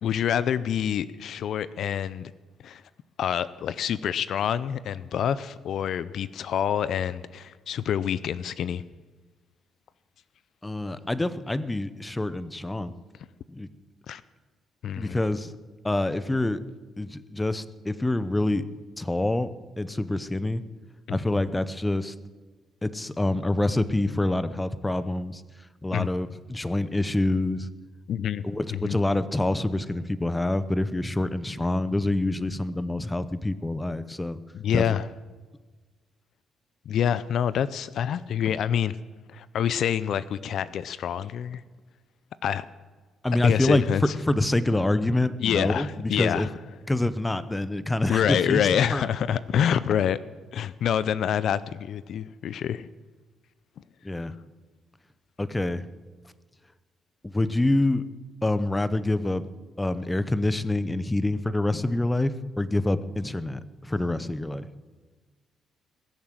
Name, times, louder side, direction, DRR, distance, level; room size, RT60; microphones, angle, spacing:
voice 1, 0.0-2.3 2.6-2.8 3.2-8.8 14.1-14.2 14.8-15.2 21.1-21.4 25.9-26.1 28.1-28.4 28.7-29.0 34.5-35.1 36.9-39.0 39.3-41.6 42.4-42.7 43.4-44.1 45.4-46.5 48.1-50.2 50.5-52.9, left 9 dB, 70° left, 17 dB, 0.5 m, -27 dB
voice 2, 10.6-12.9 13.5-13.7 15.0-15.5 15.8-16.6 17.0-18.7 19.0-19.5 19.8-20.6 21.1-22.1 22.8-25.4 25.8-27.7 28.4-34.4 34.7-34.8 43.2-43.8 44.3-46.5 46.9-48.6 48.9-49.0 54.0-54.3 55.4-55.8 57.2-58.0 58.4-59.5 59.8-64.7, left 2 dB, 15° left, 14 dB, 0.8 m, -26 dB
21.0 x 7.3 x 7.6 m, 1.4 s
cardioid pair, 90°, 0 cm